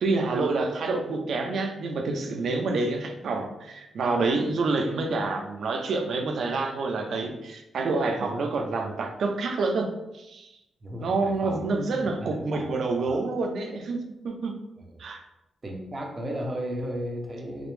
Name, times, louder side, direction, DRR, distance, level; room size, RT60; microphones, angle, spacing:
voice 1, 0.0-10.6 11.0-14.5 15.0-15.2, right 3 dB, 70° right, 3 dB, 0.6 m, -28 dB
voice 2, 10.8-11.7 12.0-12.7 13.0-13.2 15.6-17.7, equal, 30° right, 0 dB, 0.8 m, -34 dB
5.0 x 2.0 x 3.2 m, 0.90 s
cardioid pair, 110°, 0 cm